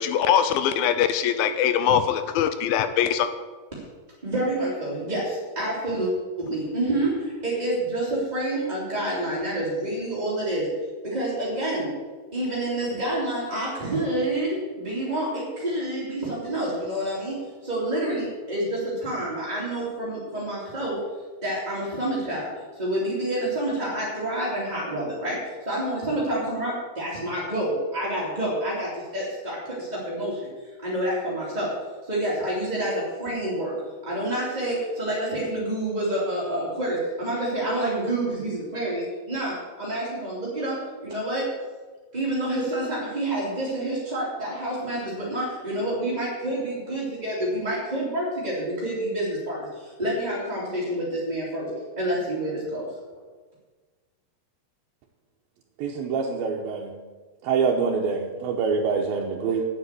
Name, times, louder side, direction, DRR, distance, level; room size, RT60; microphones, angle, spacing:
voice 1, 0.0-3.3, left 9 dB, 80° left, 10 dB, 2.4 m, -22 dB
voice 2, 4.2-6.1 6.4-10.7 11.0-11.9 12.3-17.4 17.6-21.0 21.4-31.7 32.0-33.8 34.0-40.8 41.0-41.5 42.1-51.7 52.0-52.9, right 1 dB, 15° right, -8 dB, 2.2 m, -28 dB
voice 3, 55.8-56.9 57.4-59.7, right 5 dB, 75° right, 0 dB, 2.6 m, -25 dB
9.4 x 8.0 x 8.2 m, 1.4 s
omnidirectional pair, 4.3 m